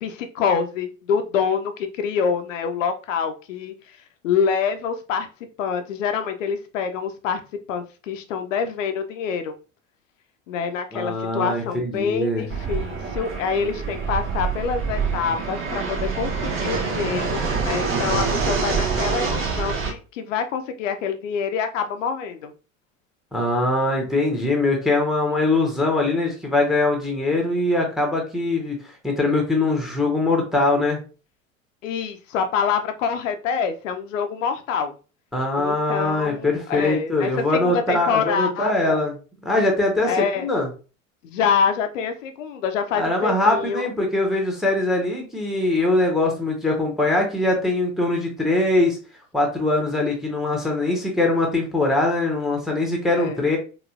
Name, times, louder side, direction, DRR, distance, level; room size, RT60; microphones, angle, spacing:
voice 1, 0.0-3.7 4.2-5.3 5.6-7.4 7.7-9.5 10.5-22.5 31.8-34.9 35.6-39.0 40.1-40.5 41.2-43.8 53.1-53.4, left 6 dB, 70° left, 8 dB, 0.5 m, -26 dB
voice 2, 10.9-12.5 23.3-28.8 29.0-31.0 35.3-39.2 39.4-40.7 42.9-49.0 49.3-53.6, left 2 dB, ahead, 2 dB, 0.9 m, -22 dB
Fixed-wing aircraft airplane, 12.5-19.9, right 5 dB, 30° right, 0.8 m, -26 dB
3.9 x 2.5 x 2.4 m, 0.34 s
figure-of-eight pair, 70°, 40 cm